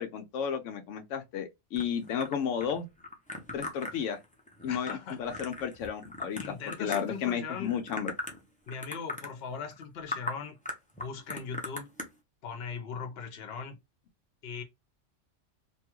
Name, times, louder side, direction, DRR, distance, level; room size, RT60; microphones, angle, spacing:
voice 1, 0.0-2.9 3.5-4.2 4.6-8.1, left 7 dB, 85° left, 0.9 m, -33 dB
sound 1, 1.8-7.3 7.6-8.4 8.7-9.3 9.7-9.8 10.1-10.4 10.7-12.1, left 1 dB, 10° left, 0.5 m, -39 dB
voice 2, 4.7-5.2 6.4-7.7 8.7-10.6 11.0-11.9 12.4-13.8 14.4-14.6, left 6 dB, 60° left, 1.0 m, -39 dB
2.9 x 2.3 x 2.9 m
omnidirectional pair, 1.3 m